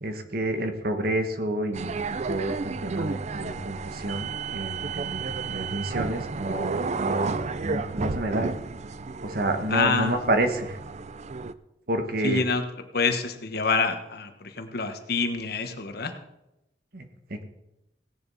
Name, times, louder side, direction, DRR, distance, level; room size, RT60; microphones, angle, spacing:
voice 1, 0.0-8.5 9.2-10.8 11.9-12.4 16.9-17.0 17.3-17.4, right 1 dB, 60° right, 6 dB, 1.5 m, -29 dB
sound 1, 1.7-11.5, right 4 dB, 40° right, 0.5 m, -32 dB
voice 2, 9.7-10.1 12.2-12.6 12.9-16.1, left 4 dB, 60° left, 7 dB, 1.3 m, -26 dB
17.0 x 10.5 x 4.2 m, 0.90 s
head